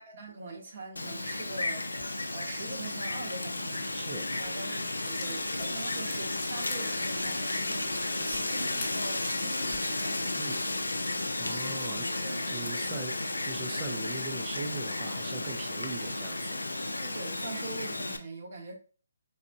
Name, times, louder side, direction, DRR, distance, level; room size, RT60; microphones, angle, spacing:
voice 1, 0.0-2.1 2.3-3.9 4.4-10.2 11.9-12.7 17.0-18.7, right 3 dB, 50° right, 1.2 m, -43 dB
Wind, 1.0-18.2, left 2 dB, 85° left, 0.5 m, -33 dB
voice 2, 3.9-4.4 10.4-10.6 11.4-12.0 12.5-13.1 13.4-16.6, right 3 dB, 25° right, 0.5 m, -40 dB
sound 1, 4.4-4.5 5.0-8.9 9.5-9.8, left 4 dB, 35° left, 0.8 m, -46 dB
4.0 x 2.6 x 2.7 m
figure-of-eight pair, 145°, 0 cm